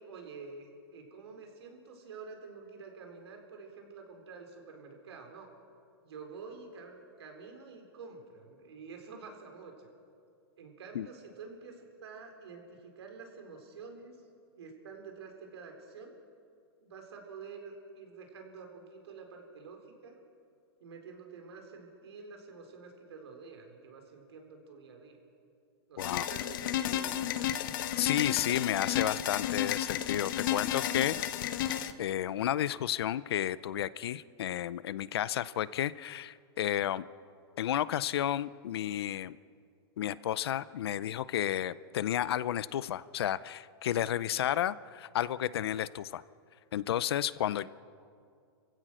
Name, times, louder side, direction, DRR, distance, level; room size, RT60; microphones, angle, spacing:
voice 1, 0.0-5.5 6.0-9.9 10.6-14.2 14.6-16.2 16.8-20.2 20.8-25.2 25.9-27.6, right 4 dB, 80° right, 3 dB, 4.3 m, -48 dB
voice 2, 26.0-26.3 28.0-31.5 32.0-37.1 37.6-39.4 40.0-46.2 46.7-47.7, left 11 dB, 70° left, 18 dB, 0.6 m, -32 dB
sound 1, 26.0-31.9, left 11 dB, 55° left, 1.0 m, -32 dB
27.5 x 15.5 x 6.3 m, 2.3 s
supercardioid pair, 165°, 14 cm